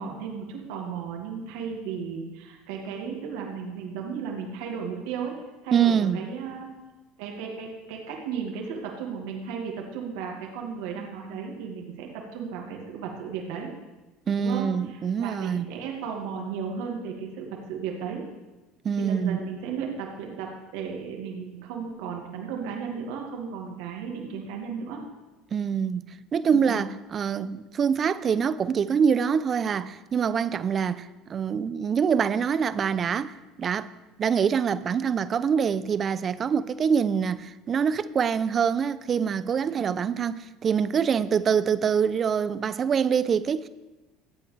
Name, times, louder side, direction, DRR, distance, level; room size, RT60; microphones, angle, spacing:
voice 1, 0.0-5.3 5.6-6.7 7.2-13.7 14.4-18.2 19.0-25.0 26.5-26.8 39.7-40.0, right 6 dB, 70° right, 2.2 m, -35 dB
voice 2, 5.7-6.2 14.3-15.7 18.8-19.4 25.5-33.9 34.2-43.7, right 7 dB, 40° right, 0.6 m, -25 dB
23.5 x 8.4 x 3.4 m
hypercardioid pair, 75°, 0 cm